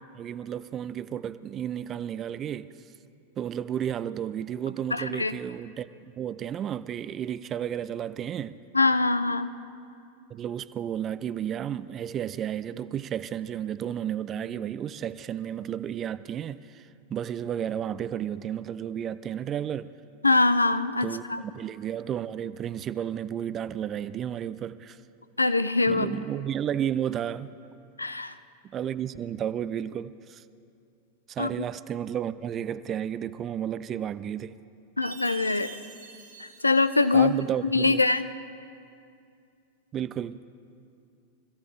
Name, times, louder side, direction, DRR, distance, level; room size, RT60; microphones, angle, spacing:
voice 1, 0.1-2.7 3.4-5.9 6.2-8.6 10.3-19.9 21.0-25.0 25.9-27.5 28.6-30.4 31.3-34.6 37.1-38.0 39.9-40.4, right 9 dB, 30° right, 0.4 m, -32 dB
voice 2, 4.9-5.4 8.7-9.5 20.2-21.4 25.4-26.1 28.0-28.3 31.4-31.5 35.0-35.7 36.4-37.4 37.7-38.3, left 3 dB, 80° left, 0.5 m, -23 dB
Chime, 35.0-37.5, right 5 dB, 80° right, 3.1 m, -45 dB
25.0 x 15.0 x 3.3 m
figure-of-eight pair, 90°, 0 cm